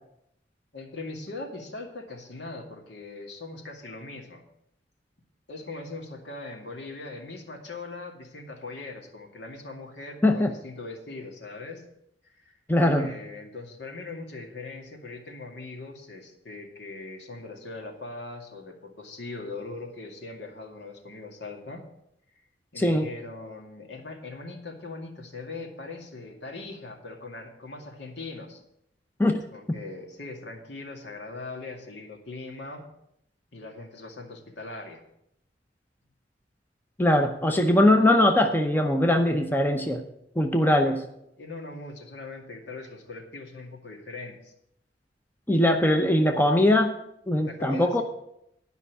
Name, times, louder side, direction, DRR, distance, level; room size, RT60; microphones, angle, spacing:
voice 1, 0.7-4.4 5.5-11.9 12.2-12.6 13.0-21.8 22.7-28.6 29.5-32.8 33.5-35.0 40.6-41.0 41.4-44.5 47.4-48.0, left 3 dB, 75° left, 1 dB, 2.2 m, -40 dB
voice 2, 12.7-13.1 22.8-23.1 29.2-29.4 29.7-29.8 37.0-40.0 40.4-41.0 45.5-46.9 47.3-48.0, left 1 dB, 10° left, 4 dB, 0.7 m, -21 dB
11.5 x 5.5 x 8.1 m, 0.79 s
head